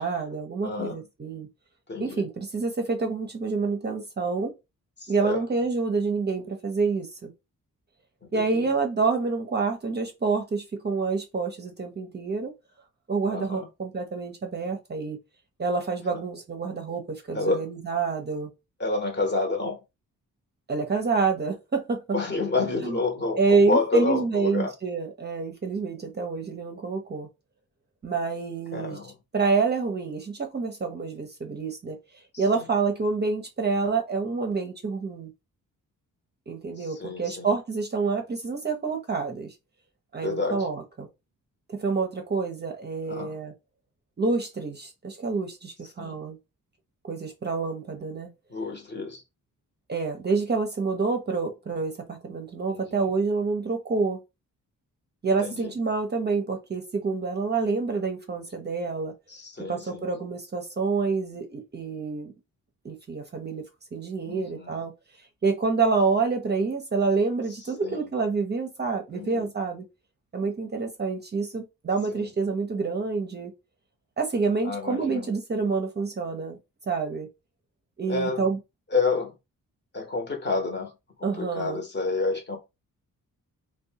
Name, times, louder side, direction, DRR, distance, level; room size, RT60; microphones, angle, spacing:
voice 1, 0.0-1.5 2.0-4.5 5.1-7.3 8.3-12.5 13.1-15.2 15.6-18.5 20.7-22.2 22.8-23.0 23.4-27.3 28.0-29.0 29.3-32.0 32.4-35.3 36.5-39.5 40.1-41.1 41.7-43.5 44.2-46.4 47.1-48.3 49.9-54.2 55.2-59.1 59.6-62.3 62.8-64.9 65.4-69.8 70.3-73.5 74.2-76.6 76.9-77.3 78.0-78.6 81.2-81.8, right 4 dB, 30° right, 0.5 m, -27 dB
voice 2, 0.6-1.0 1.9-2.2 5.0-5.4 8.2-8.6 13.3-13.7 17.3-17.6 18.8-19.8 22.1-24.7 28.7-29.1 32.5-32.6 36.8-37.5 40.2-40.7 43.1-43.4 46.0-46.2 48.5-49.2 52.7-53.0 55.4-55.7 59.3-60.0 64.2-64.8 67.8-68.0 69.1-69.5 72.1-72.3 74.6-75.3 78.1-78.5 78.9-79.3 79.9-80.9 81.2-82.6, left 3 dB, 30° left, 0.8 m, -29 dB
2.6 x 2.1 x 2.7 m
cardioid pair, 95°, 33 cm